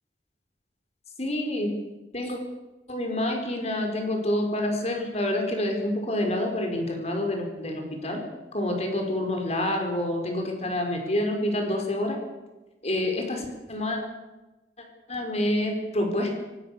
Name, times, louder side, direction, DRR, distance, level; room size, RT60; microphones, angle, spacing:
voice 1, 1.2-1.7 2.1-2.4 2.9-8.2 8.5-12.2 12.8-14.0 15.1-16.3, left 1 dB, 40° left, 3 dB, 5.0 m, -27 dB
23.0 x 18.5 x 6.8 m, 1.1 s
head